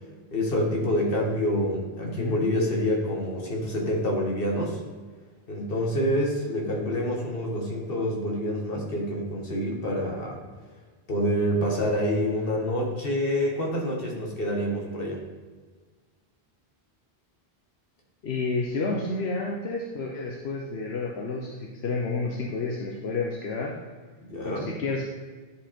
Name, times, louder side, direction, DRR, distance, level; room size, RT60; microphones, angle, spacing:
voice 1, 0.3-4.8 5.5-10.4 11.1-15.2 24.2-24.7, equal, 60° left, 0 dB, 1.8 m, -27 dB
voice 2, 2.0-2.4 18.2-23.7 24.4-25.1, left 3 dB, 80° left, 0 dB, 1.1 m, -30 dB
10.5 x 5.2 x 4.4 m, 1.4 s
omnidirectional pair, 1.1 m